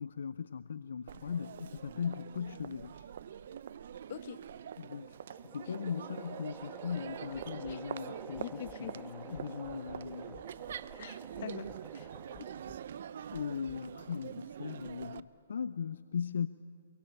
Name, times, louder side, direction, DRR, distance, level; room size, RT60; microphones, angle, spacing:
voice 1, 0.0-3.1 4.8-5.1 5.5-10.4 13.3-16.5, left 7 dB, 70° left, 14 dB, 0.6 m, -38 dB
Crowd, 1.1-15.2, right 9 dB, 60° right, 0.7 m, -45 dB
voice 2, 4.1-4.4 5.7-5.8 7.7-7.8 8.4-9.0 11.0-12.1 12.4-12.5, left 10 dB, 50° left, 12 dB, 1.2 m, -44 dB
sound 1, 4.6-12.9, right 3 dB, 5° right, 1.3 m, -52 dB
sound 2, 7.3-7.8 8.3-8.8 9.3-9.8 10.3-10.8 11.3-11.8 12.3-12.8 13.3-13.8 14.3-14.4, left 11 dB, 25° left, 1.1 m, -56 dB
27.5 x 23.5 x 8.8 m, 2.4 s
hypercardioid pair, 135°, 0 cm